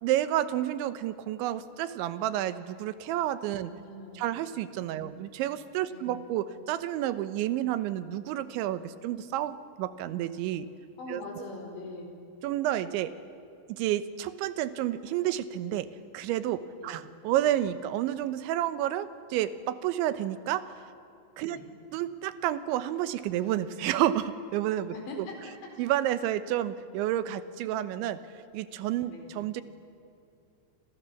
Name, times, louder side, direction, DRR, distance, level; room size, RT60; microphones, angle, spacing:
voice 1, 0.0-3.7 4.2-10.7 11.1-11.4 12.4-13.1 13.7-15.9 16.1-20.7 21.4-21.6 21.9-24.9 25.8-28.2 28.5-29.6, right 12 dB, 90° right, 12 dB, 3.4 m, -30 dB
voice 2, 3.6-4.3 4.9-5.2 5.9-6.3 11.0-12.1 16.8-17.0 21.5-21.6 24.9-25.7 29.1-29.3, left 2 dB, 75° left, 2 dB, 6.9 m, -43 dB
29.0 x 26.5 x 7.2 m, 2.6 s
omnidirectional pair, 5.2 m